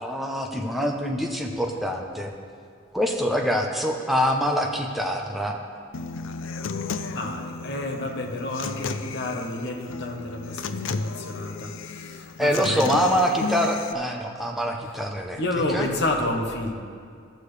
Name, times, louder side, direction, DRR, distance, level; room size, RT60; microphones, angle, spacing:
voice 1, 0.0-2.3 2.9-5.6 12.4-15.4 15.7-15.9, equal, ahead, 1 dB, 0.6 m, -25 dB
Human voice / Acoustic guitar, 5.9-13.9, left 4 dB, 70° left, 0.4 m, -33 dB
voice 2, 7.1-13.1 15.4-16.7, left 2 dB, 55° left, 1 dB, 0.9 m, -30 dB
14.5 x 6.7 x 3.3 m, 2.3 s
head